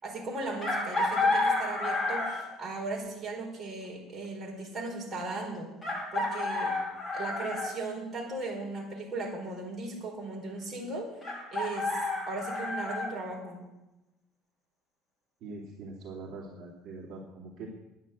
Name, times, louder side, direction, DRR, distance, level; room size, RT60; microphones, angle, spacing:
voice 1, 0.0-5.7 6.1-6.7 7.1-11.1 11.5-12.0 12.3-13.6, right 2 dB, 25° right, -2 dB, 4.5 m, -37 dB
Chicken rooster, 0.6-2.6 4.2-4.3 5.8-7.7 11.2-13.1, left 2 dB, 10° left, 3.0 m, -30 dB
voice 2, 15.4-17.8, right 3 dB, 55° right, -4 dB, 2.5 m, -43 dB
11.0 x 9.6 x 8.1 m, 0.99 s
cardioid pair, 145°, 0 cm